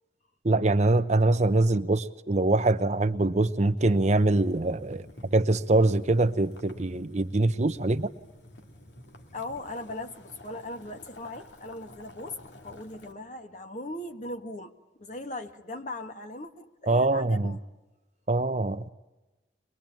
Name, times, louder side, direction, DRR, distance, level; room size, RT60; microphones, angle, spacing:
voice 1, 0.4-8.1 16.9-17.6 18.3-18.9, right 2 dB, 40° right, 11 dB, 0.8 m, -24 dB
Boiling, 3.8-13.1, left 1 dB, 80° left, 2.4 m, -50 dB
voice 2, 9.3-17.6, left 2 dB, 45° left, 7 dB, 1.5 m, -39 dB
23.5 x 22.0 x 9.1 m, 1.1 s
head